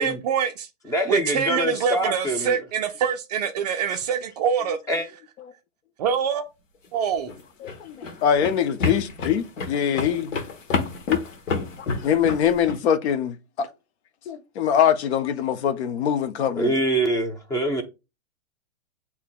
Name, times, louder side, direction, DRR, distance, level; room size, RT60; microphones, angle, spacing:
voice 1, 0.0-0.7 1.1-4.8 6.0-6.4 6.9-7.3, right 7 dB, 35° right, 0.4 m, -24 dB
voice 2, 0.9-2.6 4.9-5.1 16.6-17.8, right 1 dB, 10° left, 0.7 m, -24 dB
sound 1, 7.1-12.8, left 4 dB, 80° left, 1.1 m, -29 dB
voice 3, 7.6-10.3 11.1-11.2 11.8-13.7 14.3-16.7, left 9 dB, 60° left, 0.7 m, -23 dB
8.2 x 2.8 x 2.2 m
hypercardioid pair, 135°, 38 cm